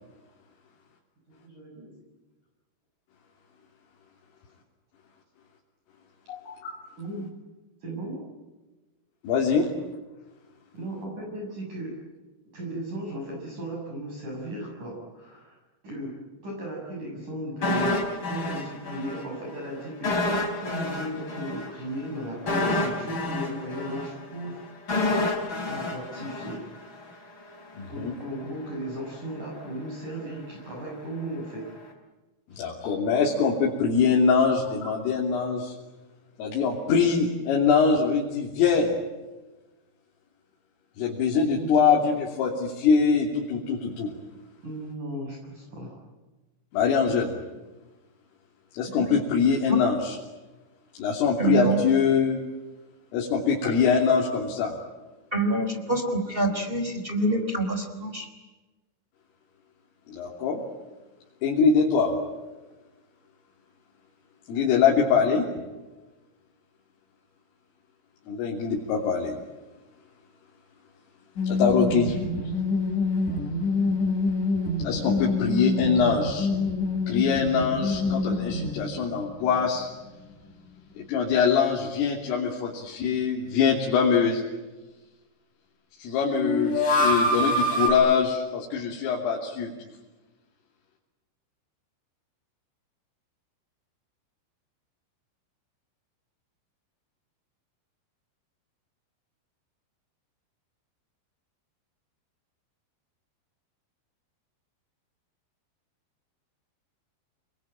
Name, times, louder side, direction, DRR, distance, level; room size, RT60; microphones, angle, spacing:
voice 1, 1.4-1.9 7.0-7.3 7.8-8.2 10.7-12.0 12.5-15.6 15.8-24.6 25.6-26.6 27.9-31.7 32.5-32.6 41.5-42.1 44.6-46.0, right 1 dB, 40° right, -2 dB, 8.0 m, -36 dB
voice 2, 6.3-6.8 9.2-9.7 27.8-28.1 32.6-35.7 36.4-38.9 41.0-44.1 46.7-47.3 48.8-50.2 51.0-52.4 53.1-54.8 60.1-60.6 61.4-62.1 64.5-65.5 68.3-69.4 71.4-72.2 74.8-76.5 77.1-79.9 81.0-84.4 86.0-89.7, left 6 dB, 90° left, -2 dB, 5.6 m, -23 dB
sound 1, 17.6-19.2 19.5-19.7 20.0-27.1 27.4-27.6, left 2 dB, 25° left, 4.3 m, -28 dB
voice 3, 48.8-49.2 49.7-49.8 51.4-51.8 53.6-53.7 55.3-58.3, right 2 dB, 10° right, 6 dB, 3.4 m, -26 dB
sound 2, 71.4-79.2 79.4-79.5 86.4-87.9, left 2 dB, 45° left, 5.0 m, -26 dB
29.0 x 22.0 x 9.0 m, 1.2 s
omnidirectional pair, 5.7 m